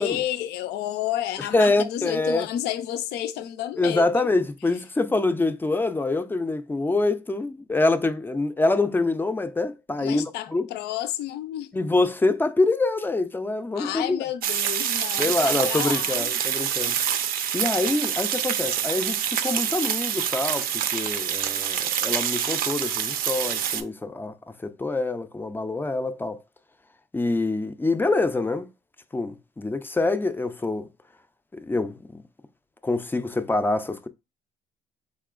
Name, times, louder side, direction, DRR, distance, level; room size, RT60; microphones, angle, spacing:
voice 1, 0.0-4.3 10.0-11.7 13.7-16.4 16.8-17.0, left 12 dB, 80° left, 0.4 m, -31 dB
voice 2, 1.4-2.5 3.8-10.7 11.7-14.2 15.2-17.0 17.5-26.4 27.1-28.7 29.1-30.9 31.5-32.2 32.8-34.1, left 2 dB, 10° left, 0.4 m, -25 dB
sound 1, 14.4-23.8, right 9 dB, 60° right, 0.5 m, -26 dB
4.1 x 2.9 x 2.4 m
cardioid pair, 110°, 17 cm